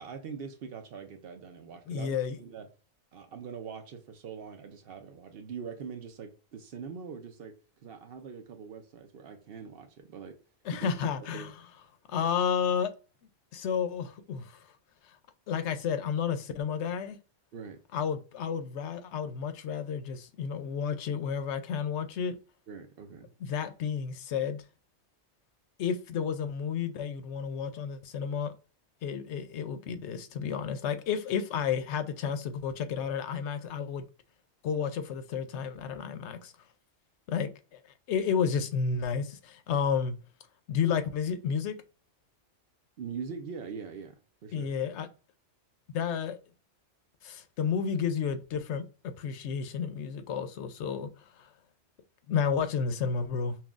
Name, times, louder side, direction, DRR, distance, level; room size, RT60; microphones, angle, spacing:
voice 1, 0.0-2.7 3.1-7.5 7.8-10.4 10.7-10.9 11.3-11.5 17.5-17.8 22.7-23.3 43.0-44.7, right 6 dB, 60° right, 0.8 m, -42 dB
voice 2, 1.9-2.4 10.7-11.5 12.1-12.9 13.5-14.6 15.5-17.2 17.9-22.4 23.4-24.6 25.8-28.5 29.0-34.0 34.6-36.5 37.3-37.8 38.1-40.2 40.7-41.7 44.5-45.1 45.9-46.4 47.2-51.1 51.4-51.5 52.3-53.6, left 7 dB, 80° left, 0.9 m, -31 dB
5.7 x 2.3 x 2.4 m
omnidirectional pair, 1.2 m